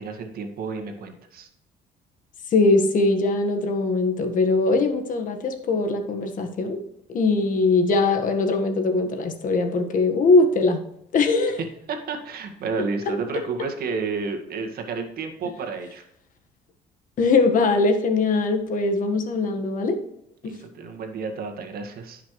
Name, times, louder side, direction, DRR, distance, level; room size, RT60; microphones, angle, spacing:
voice 1, 0.0-1.5 11.9-16.0 20.4-22.2, right 4 dB, 65° right, 4 dB, 1.9 m, -31 dB
voice 2, 2.5-6.8 7.1-10.8 11.1-11.6 13.1-13.2 17.2-20.0 20.4-20.5, left 3 dB, 50° left, 5 dB, 1.6 m, -21 dB
15.5 x 6.0 x 3.2 m, 0.77 s
cardioid pair, 110°, 17 cm